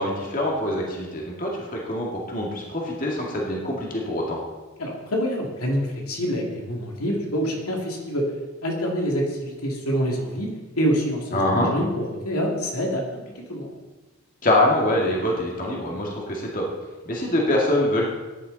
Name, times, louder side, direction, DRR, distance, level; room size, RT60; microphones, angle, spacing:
voice 1, 0.0-4.4 11.3-11.7 14.4-16.6 17.1-18.0, left 1 dB, 35° left, -2 dB, 2.1 m, -24 dB
voice 2, 4.8-8.3 8.6-10.5 10.8-13.7, equal, 85° left, -1 dB, 2.6 m, -26 dB
15.0 x 10.5 x 4.1 m, 1.2 s
head